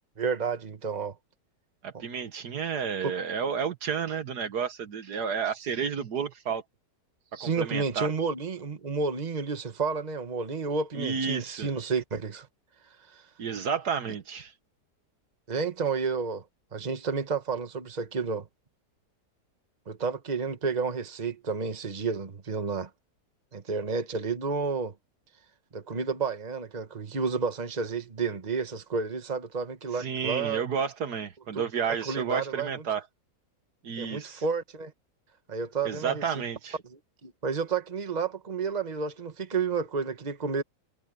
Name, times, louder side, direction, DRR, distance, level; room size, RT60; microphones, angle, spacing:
voice 1, 0.2-1.1 1.9-2.0 3.0-3.1 7.3-12.5 13.1-13.2 15.5-16.4 16.7-18.5 19.9-22.9 23.5-24.9 25.7-30.6 31.5-31.6 31.9-32.8 34.0-34.9 35.5-36.2 36.9-40.6, right 5 dB, 25° right, 1.5 m, -31 dB
voice 2, 1.8-6.6 7.4-8.1 11.0-11.7 13.4-14.5 30.0-33.0 33.8-34.4 35.9-36.8, right 6 dB, 70° right, 1.8 m, -31 dB
omnidirectional pair, 1.8 m